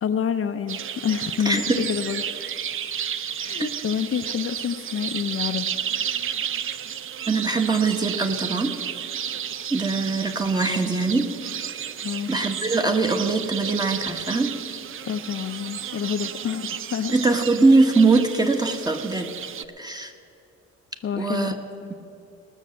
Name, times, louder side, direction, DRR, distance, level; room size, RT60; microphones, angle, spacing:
voice 1, 0.0-2.2 3.4-5.7 12.0-12.3 15.0-17.1 21.0-21.5 21.8-21.9, left 8 dB, 45° left, 7 dB, 0.7 m, -28 dB
sound 1, 0.7-19.6, right 9 dB, 45° right, 0.5 m, -32 dB
voice 2, 1.4-1.8 3.6-3.7 7.3-8.7 9.7-11.3 12.3-14.5 17.1-19.3 19.8-20.1 21.2-21.5, right 3 dB, 15° right, 5 dB, 1.2 m, -22 dB
19.0 x 6.5 x 7.7 m, 2.7 s
cardioid pair, 90°, 30 cm